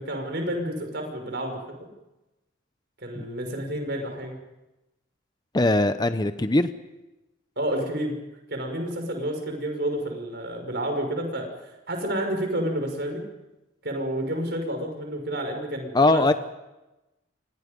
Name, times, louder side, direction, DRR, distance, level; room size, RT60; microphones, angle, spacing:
voice 1, 0.0-1.6 3.0-4.3 7.6-8.2 8.5-11.5 11.9-13.2 13.8-16.3, right 1 dB, 55° right, 4 dB, 5.9 m, -29 dB
voice 2, 5.5-6.7 15.9-16.3, left 2 dB, 20° left, 10 dB, 0.8 m, -21 dB
29.5 x 24.5 x 5.4 m, 1.0 s
head